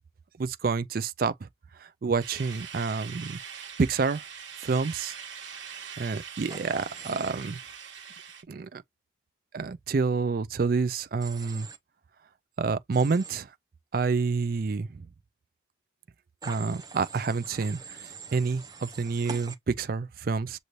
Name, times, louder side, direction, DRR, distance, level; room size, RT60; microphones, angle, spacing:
voice 1, 0.4-1.5 2.0-3.4 3.8-4.2 4.6-5.1 6.0-7.6 8.5-8.8 9.5-11.7 12.6-13.5 13.9-15.0 16.4-20.6, right 4 dB, 50° right, 0.4 m, -28 dB
sound 1, 2.2-8.4, right 7 dB, 85° right, 1.3 m, -42 dB
Human voice / Train, 6.5-7.3 11.2-11.8 12.9-13.3 16.4-19.6, right 4 dB, 20° right, 0.7 m, -44 dB
6.5 x 2.6 x 3.0 m
head